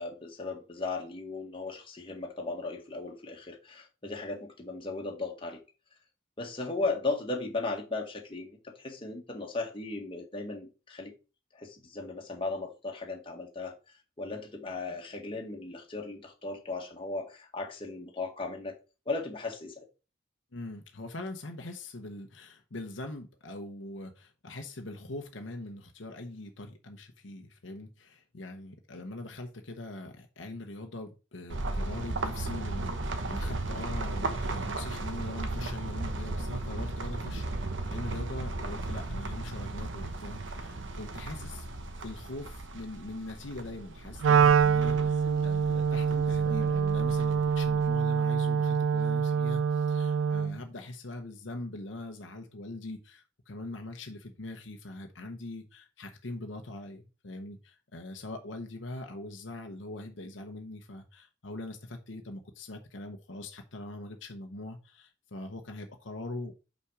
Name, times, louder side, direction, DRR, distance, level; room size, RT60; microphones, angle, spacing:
voice 1, 0.0-5.6 6.4-11.1 11.5-13.7 14.2-18.8 19.0-19.8, left 3 dB, 25° left, 1.6 m, -36 dB
voice 2, 20.5-66.6, left 2 dB, 70° left, 1.0 m, -42 dB
sound 1, 31.5-47.9, right 2 dB, 70° right, 1.0 m, -36 dB
Wind instrument woodwind instrument, 44.2-50.6, right 6 dB, 85° right, 0.3 m, -25 dB
5.7 x 5.2 x 4.9 m
head